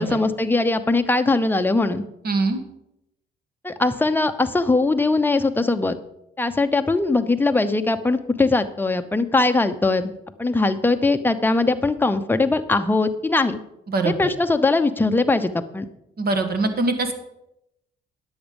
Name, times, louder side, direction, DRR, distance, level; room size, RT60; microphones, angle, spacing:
voice 1, 0.0-2.0 3.6-6.0 6.4-10.1 10.4-13.6 14.0-15.9, left 3 dB, 10° left, 8 dB, 0.7 m, -21 dB
voice 2, 2.2-2.6 13.9-14.1 16.2-17.1, right 3 dB, 50° right, 8 dB, 1.5 m, -22 dB
10.0 x 7.2 x 5.2 m, 0.84 s
cardioid pair, 90°, 20 cm